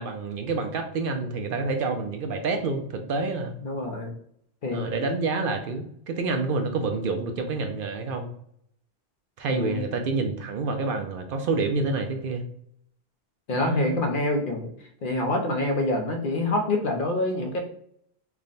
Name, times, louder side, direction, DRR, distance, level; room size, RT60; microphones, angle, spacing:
voice 1, 0.0-3.5 4.7-8.3 9.4-12.5 13.5-14.1, right 3 dB, 65° right, 5 dB, 0.7 m, -28 dB
voice 2, 3.6-4.1 4.6-4.9 9.5-9.8 13.5-14.7 15.0-17.6, left 2 dB, 60° left, 3 dB, 0.8 m, -26 dB
3.4 x 2.2 x 3.8 m, 0.68 s
omnidirectional pair, 1.1 m